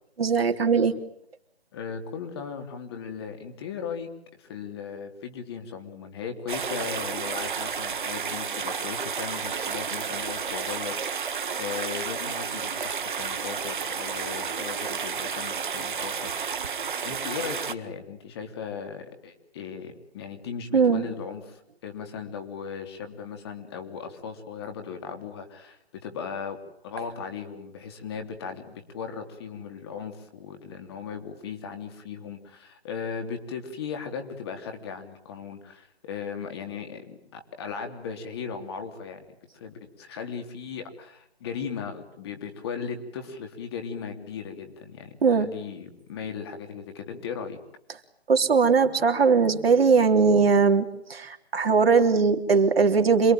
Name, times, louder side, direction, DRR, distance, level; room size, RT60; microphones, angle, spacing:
voice 1, 0.2-1.0 20.7-21.1 45.2-45.5 48.3-53.3, right 5 dB, 65° right, 5 dB, 3.6 m, -20 dB
voice 2, 1.7-4.1 4.4-11.3 11.5-16.3 16.7-26.6 26.8-39.2 39.5-45.1 45.4-47.6, left 6 dB, 25° left, 5 dB, 3.2 m, -37 dB
sound 1, 6.5-17.7, right 6 dB, 50° right, 1.9 m, -31 dB
27.5 x 22.0 x 9.2 m, 0.74 s
hypercardioid pair, 165°, 32 cm